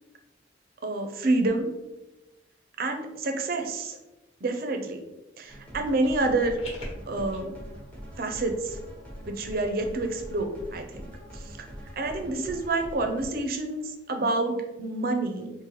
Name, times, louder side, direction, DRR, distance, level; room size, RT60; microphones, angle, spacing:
voice 1, 0.8-1.7 2.8-4.0 4.4-5.0 5.4-6.6 7.1-7.5 8.2-8.8 9.2-10.9 11.3-11.6 12.0-15.5, right 2 dB, 55° right, 5 dB, 0.5 m, -28 dB
sound 1, 5.4-7.4, left 1 dB, 35° left, 1.2 m, -44 dB
sound 2, 5.5-13.3, equal, 10° left, 0.8 m, -43 dB
3.7 x 2.6 x 3.0 m, 0.99 s
head